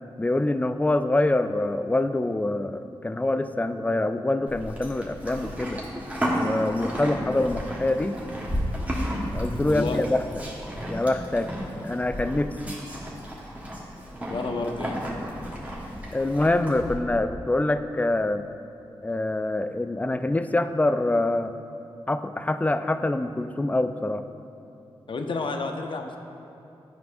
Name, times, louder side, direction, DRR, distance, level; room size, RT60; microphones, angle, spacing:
voice 1, 0.2-5.8 6.4-8.2 9.3-10.2 10.9-11.5 11.8-12.8 16.1-18.5 19.0-21.5 22.1-24.2, left 2 dB, 15° left, 10 dB, 0.3 m, -25 dB
Livestock farm animals working animals, 4.5-16.9, equal, 15° right, 1.3 m, -32 dB
voice 2, 9.7-10.0 14.3-15.0 25.1-26.2, left 3 dB, 60° left, 4 dB, 0.6 m, -30 dB
11.0 x 4.7 x 2.6 m, 2.8 s
cardioid pair, 50°, 10 cm